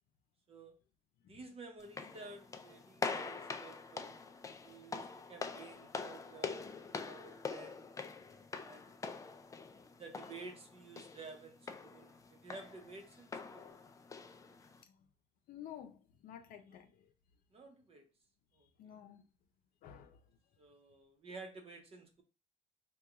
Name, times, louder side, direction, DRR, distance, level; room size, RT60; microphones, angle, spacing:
voice 1, 1.3-4.2 4.6-7.9 8.6-9.0 10.0-13.6 16.7-16.8 17.5-18.0 18.5-18.7 20.6-22.2, right 3 dB, 45° right, 0.8 m, -52 dB
sound 1, 1.8-14.8, left 4 dB, 25° left, 0.3 m, -45 dB
voice 2, 13.6-13.9 14.8-15.1 15.5-17.1 18.8-19.2 19.8-20.2, left 10 dB, 85° left, 0.5 m, -53 dB
2.9 x 2.3 x 3.5 m
cardioid pair, 110°, 14 cm